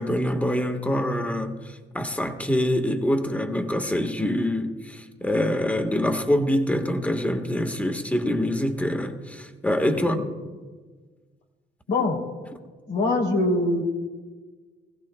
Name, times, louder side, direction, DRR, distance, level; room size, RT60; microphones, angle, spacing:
voice 1, 0.0-10.2, left 1 dB, 5° left, 1.4 m, -25 dB
voice 2, 9.8-10.2 11.9-12.2 12.9-13.8, left 2 dB, 85° left, 3.0 m, -23 dB
23.0 x 15.5 x 2.2 m
cardioid pair, 90°, 20 cm